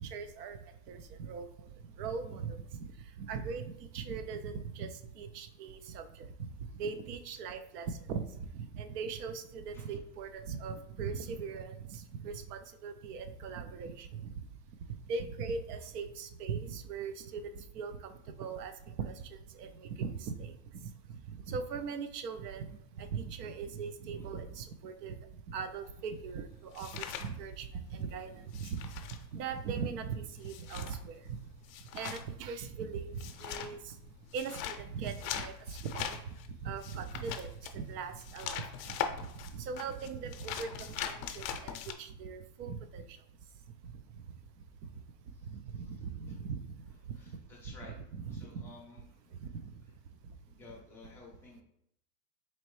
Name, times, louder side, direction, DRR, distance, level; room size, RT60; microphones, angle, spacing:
voice 1, 0.0-0.6 0.9-1.7 2.0-2.9 3.2-6.3 6.8-14.4 15.1-18.1 18.4-25.2 25.5-28.9 29.3-31.4 31.9-34.0 34.3-36.2 36.6-39.0 39.5-43.0 45.5-46.7 47.7-48.6 49.4-49.7, right 5 dB, 70° right, 10 dB, 0.6 m, -40 dB
sound 1, 25.9-28.0 28.3-41.9, left 9 dB, 55° left, 0.5 m, -41 dB
voice 2, 45.3-45.8 46.3-46.4 47.1-47.9 48.3-49.0 50.5-51.6, left 3 dB, 5° left, -5 dB, 0.5 m, -54 dB
4.3 x 3.0 x 3.1 m, 0.74 s
supercardioid pair, 155°, 49 cm